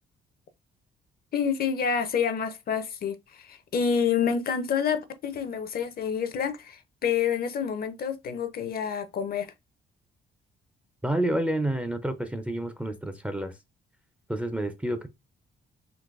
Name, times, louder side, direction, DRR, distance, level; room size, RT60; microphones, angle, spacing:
voice 1, 1.3-9.5, left 7 dB, 50° left, 0.5 m, -28 dB
voice 2, 11.0-13.5 14.3-15.1, right 1 dB, 5° right, 0.4 m, -29 dB
3.9 x 2.5 x 2.3 m
cardioid pair, 90°, 20 cm